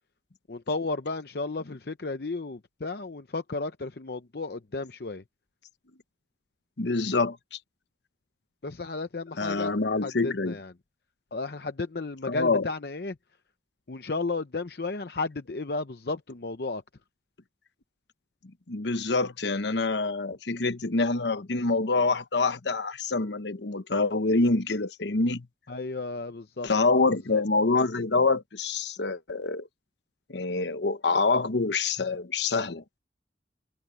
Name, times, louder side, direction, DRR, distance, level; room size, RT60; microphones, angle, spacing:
voice 1, 0.5-5.2 8.6-9.7 10.0-10.7 11.3-13.2 13.9-16.8 25.7-26.7 27.3-27.4, left 3 dB, 60° left, 0.7 m, -33 dB
voice 2, 6.8-7.6 9.4-10.6 12.3-12.7 18.7-25.5 26.6-29.7 30.3-32.8, left 3 dB, 75° left, 1.1 m, -26 dB
head